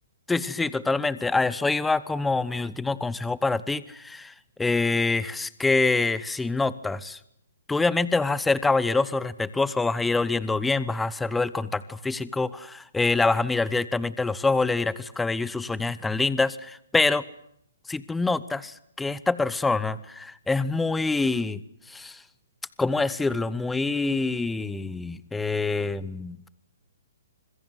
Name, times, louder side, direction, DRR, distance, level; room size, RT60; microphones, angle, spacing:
voice 1, 0.3-4.3 4.6-7.2 7.7-17.2 17.9-21.6 21.9-22.2 22.8-26.4, left 3 dB, 5° left, 17 dB, 1.0 m, -25 dB
26.0 x 22.0 x 9.4 m, 0.71 s
hypercardioid pair, 155°, 0 cm